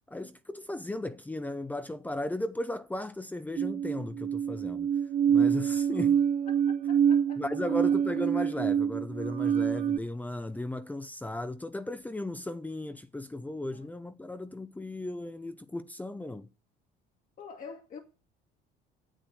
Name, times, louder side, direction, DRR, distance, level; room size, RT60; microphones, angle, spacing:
voice 1, 0.1-4.9 5.3-6.3 7.4-16.5, left 1 dB, 10° left, 0.7 m, -36 dB
sound 1, 3.6-10.0, right 8 dB, 35° right, 0.6 m, -26 dB
voice 2, 6.9-7.4 17.4-18.0, left 5 dB, 45° left, 1.9 m, -44 dB
10.0 x 8.1 x 8.0 m
cardioid pair, 130°, 18 cm